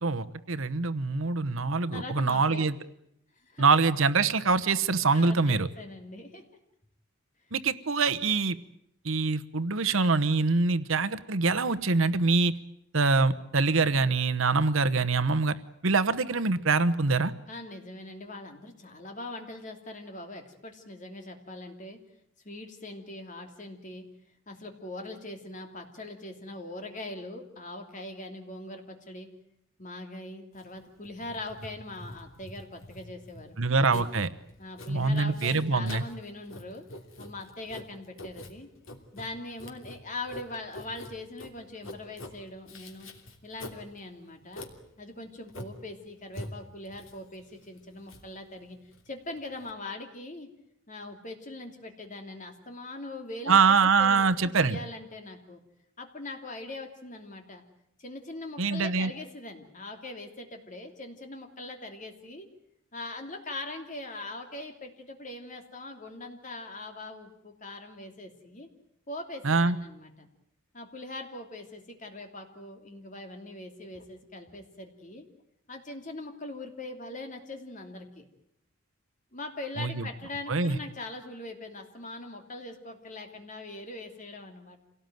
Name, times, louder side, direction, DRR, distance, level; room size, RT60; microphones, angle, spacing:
voice 1, 0.0-2.7 3.6-5.7 7.5-8.6 9.0-12.5 12.9-15.6 15.8-17.3 33.6-34.3 34.9-36.0 53.5-54.8 58.6-59.1 69.4-69.8 79.8-80.0 80.5-80.8, right 4 dB, 70° right, 11 dB, 1.0 m, -24 dB
voice 2, 1.9-2.6 3.4-3.7 5.1-6.4 17.5-22.0 22.4-24.1 24.5-29.3 29.8-34.1 34.6-36.8 37.2-38.7 39.1-43.1 43.4-44.7 45.0-48.8 49.1-50.5 50.9-55.6 56.0-57.6 58.0-62.5 62.9-68.7 69.1-70.3 70.7-75.2 75.7-78.2 79.3-84.8, left 2 dB, 35° left, 4 dB, 3.0 m, -41 dB
Writing, 30.5-49.7, left 1 dB, 70° left, 3.0 m, -46 dB
26.5 x 18.0 x 9.3 m, 0.77 s
head